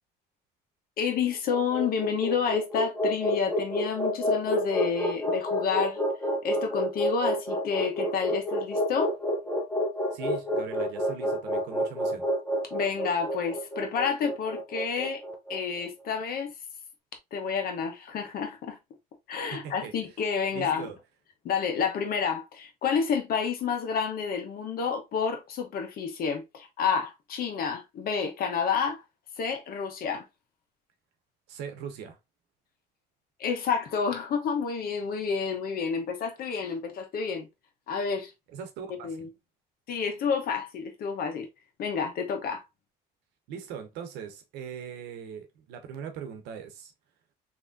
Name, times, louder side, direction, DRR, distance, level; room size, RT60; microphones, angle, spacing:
voice 1, 1.0-6.0 6.4-9.1 12.7-15.2 15.5-16.5 17.3-18.8 19.3-20.9 21.4-29.0 29.4-30.2 33.4-37.5 37.9-38.3 38.9-39.3 39.9-41.5 41.8-42.6, left 6 dB, 60° left, 1.1 m, -29 dB
sound 1, 1.4-15.6, equal, 5° left, 0.7 m, -29 dB
voice 2, 10.1-12.3 19.5-19.9 20.5-21.0 31.5-32.2 38.5-39.3 43.5-46.9, right 7 dB, 90° right, 0.9 m, -40 dB
3.5 x 2.9 x 2.6 m
cardioid pair, 110°, 17 cm